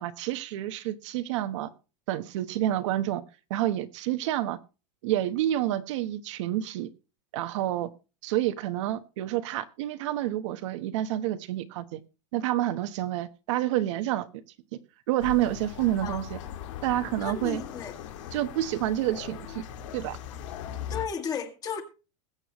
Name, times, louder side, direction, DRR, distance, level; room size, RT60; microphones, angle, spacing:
voice 1, 0.0-1.7 2.1-3.2 3.5-4.6 5.0-6.9 7.3-7.9 8.2-12.0 12.3-14.3 15.1-16.4 16.8-17.6 18.3-19.6 19.9-20.2, right 13 dB, 70° right, 1.2 m, -28 dB
sound 1, 15.2-21.0, left 10 dB, 75° left, 2.3 m, -39 dB
voice 2, 17.2-18.0 20.9-21.8, left 6 dB, 25° left, 2.0 m, -34 dB
21.0 x 7.8 x 3.1 m
supercardioid pair, 160°, 16 cm